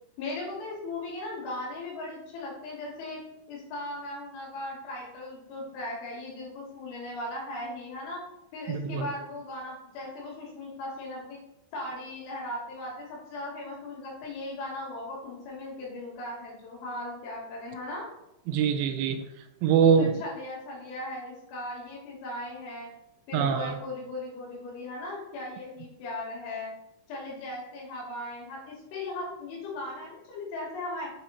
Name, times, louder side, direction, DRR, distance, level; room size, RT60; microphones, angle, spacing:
voice 1, 0.2-3.2 3.5-8.2 8.5-11.4 11.7-18.1 20.0-22.9 23.3-26.7 27.1-31.1, left 2 dB, 75° left, -4 dB, 5.0 m, -38 dB
voice 2, 8.7-9.1 18.5-19.2 19.6-20.1 23.3-23.8, right 7 dB, 80° right, 6 dB, 2.9 m, -23 dB
9.1 x 4.4 x 4.2 m, 0.87 s
omnidirectional pair, 5.7 m